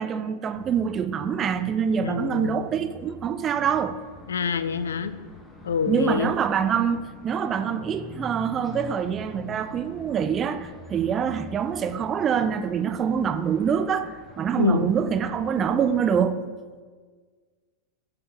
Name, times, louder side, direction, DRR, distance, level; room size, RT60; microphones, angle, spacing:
voice 1, 0.0-4.0 5.9-16.4, right 7 dB, 25° right, 0.4 m, -25 dB
sound 1, 0.5-16.2, left 1 dB, 15° left, 1.0 m, -45 dB
voice 2, 2.0-2.7 4.3-5.1 5.6-6.4 14.6-14.9, left 6 dB, 70° left, 0.4 m, -26 dB
6.8 x 5.3 x 5.6 m
figure-of-eight pair, 90°, 0 cm